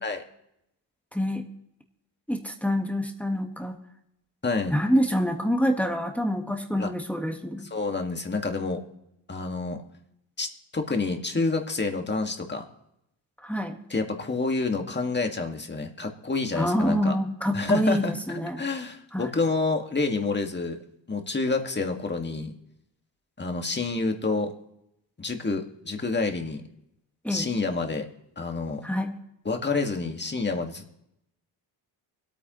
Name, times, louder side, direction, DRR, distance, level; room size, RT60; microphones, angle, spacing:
voice 1, 1.1-1.4 2.3-3.8 4.7-7.7 13.4-13.8 16.5-18.6 19.1-19.3 27.2-27.5 28.8-29.1, equal, 5° left, 3 dB, 1.5 m, -26 dB
voice 2, 4.4-4.8 6.8-6.9 7.7-8.8 9.3-9.8 10.4-10.5 10.7-12.6 13.9-17.1 17.5-20.8 21.1-22.5 23.4-24.5 25.2-26.6 27.3-28.1 28.4-28.8 29.5-30.9, left 3 dB, 25° left, 4 dB, 1.9 m, -28 dB
24.5 x 8.9 x 3.1 m, 0.81 s
cardioid pair, 65°, 44 cm